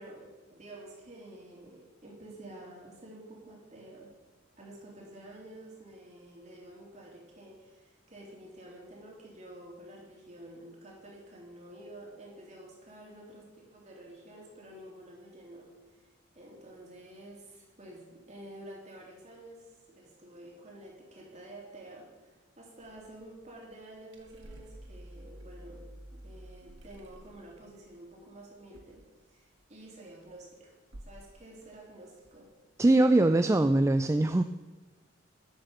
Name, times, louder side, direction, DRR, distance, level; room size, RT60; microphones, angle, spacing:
voice 1, 0.0-4.1 4.6-16.1 16.3-30.7 31.0-32.5, right 1 dB, 35° right, -2 dB, 3.3 m, -50 dB
sound 1, 22.8-29.7 30.0-30.5 30.9-31.3 31.6-32.9, right 1 dB, 85° right, 1.5 m, -51 dB
voice 2, 32.8-34.4, right 2 dB, 15° right, 9 dB, 0.3 m, -22 dB
11.0 x 7.9 x 6.7 m, 1.2 s
head